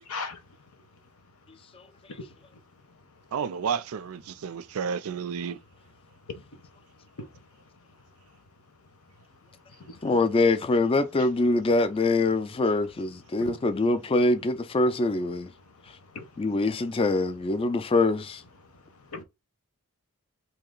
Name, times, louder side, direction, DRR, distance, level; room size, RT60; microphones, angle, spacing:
voice 1, 0.1-0.4 6.3-6.4 7.2-7.3 9.8-10.0 13.4-13.5 16.1-16.3 19.1-19.2, left 3 dB, 70° left, 0.9 m, -37 dB
voice 2, 3.3-5.6, right 7 dB, 70° right, 0.4 m, -31 dB
voice 3, 10.0-15.5 16.4-18.4, left 2 dB, 25° left, 0.4 m, -24 dB
3.1 x 2.9 x 3.7 m
head